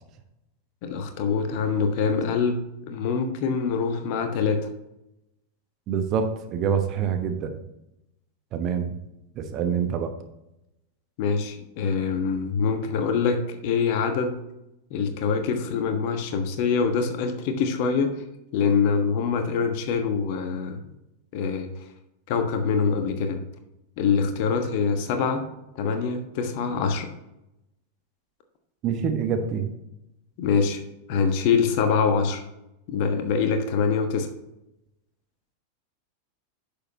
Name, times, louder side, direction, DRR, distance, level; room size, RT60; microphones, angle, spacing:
voice 1, 0.8-2.6 2.9-4.6 11.2-14.4 14.9-18.1 18.5-20.8 21.3-21.7 22.3-23.4 24.0-25.4 25.7-27.1 30.4-30.8 31.1-32.4 32.9-34.3, left 5 dB, 45° left, 6 dB, 1.3 m, -24 dB
voice 2, 5.9-7.6 8.5-8.9 9.3-10.1 28.8-29.7, right 7 dB, 35° right, 6 dB, 1.1 m, -26 dB
9.8 x 6.9 x 2.8 m, 0.88 s
figure-of-eight pair, 90°, 0 cm